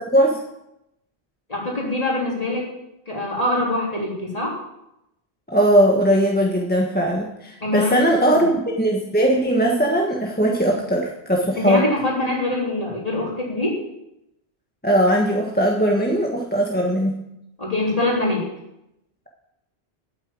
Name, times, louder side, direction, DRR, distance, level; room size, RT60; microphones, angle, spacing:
voice 1, 1.5-2.7 3.1-4.6 7.6-8.5 11.5-13.8 17.6-18.5, left 2 dB, 35° left, -3 dB, 3.7 m, -24 dB
voice 2, 5.5-11.9 14.8-17.1, right 1 dB, 10° left, -1 dB, 1.4 m, -19 dB
9.2 x 8.8 x 8.9 m, 0.86 s
omnidirectional pair, 1.1 m